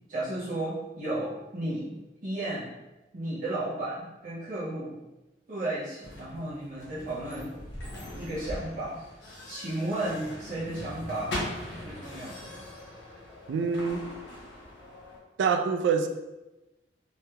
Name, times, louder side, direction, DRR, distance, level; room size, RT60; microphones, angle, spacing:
voice 1, 0.1-1.9 2.2-2.7 3.1-5.0 5.5-7.5 8.1-9.0 9.5-11.4 11.8-12.5, right 1 dB, 50° right, -9 dB, 0.6 m, -33 dB
sound 1, 6.0-15.2, left 1 dB, 70° left, 0.8 m, -41 dB
voice 2, 13.5-14.0 15.4-16.1, right 5 dB, 90° right, 7 dB, 0.3 m, -25 dB
3.1 x 2.8 x 2.3 m, 1.0 s
head